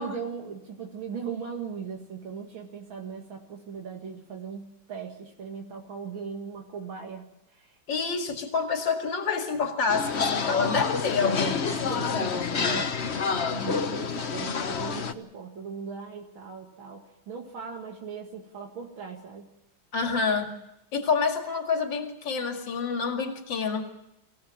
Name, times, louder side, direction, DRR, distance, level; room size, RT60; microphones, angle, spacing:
voice 1, 0.0-7.3 7.5-7.8 11.2-13.1 13.5-19.5, right 6 dB, 80° right, 1 dB, 2.8 m, -39 dB
voice 2, 7.9-12.6 19.9-20.5 20.9-23.9, left 5 dB, 65° left, 5 dB, 2.9 m, -28 dB
sound 1, 9.9-15.1, left 5 dB, 40° left, 1.2 m, -28 dB
25.5 x 16.5 x 7.4 m, 0.88 s
omnidirectional pair, 2.1 m